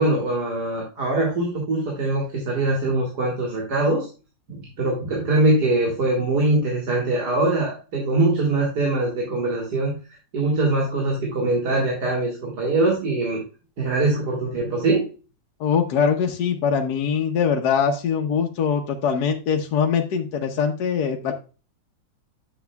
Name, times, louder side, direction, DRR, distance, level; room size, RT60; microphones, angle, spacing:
voice 1, 0.0-4.1 4.5-10.0 10.3-13.4 13.8-15.0, right 2 dB, 60° right, -2 dB, 2.4 m, -22 dB
voice 2, 15.6-21.3, left 7 dB, 65° left, 2 dB, 1.3 m, -22 dB
9.3 x 6.9 x 2.3 m, 0.34 s
omnidirectional pair, 2.0 m